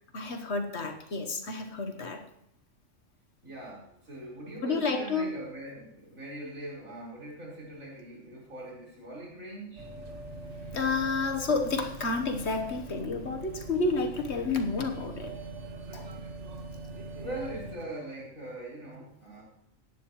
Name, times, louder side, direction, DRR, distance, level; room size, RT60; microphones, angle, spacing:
voice 1, 0.1-2.2 4.6-5.3 10.7-15.3 15.9-16.1, left 3 dB, 55° left, 5 dB, 1.4 m, -30 dB
voice 2, 3.4-9.9 17.2-19.4, right 1 dB, 80° right, -5 dB, 4.9 m, -41 dB
sound 1, 9.8-17.8, right 2 dB, 60° right, 1.8 m, -42 dB
16.5 x 10.5 x 3.1 m, 0.79 s
omnidirectional pair, 1.4 m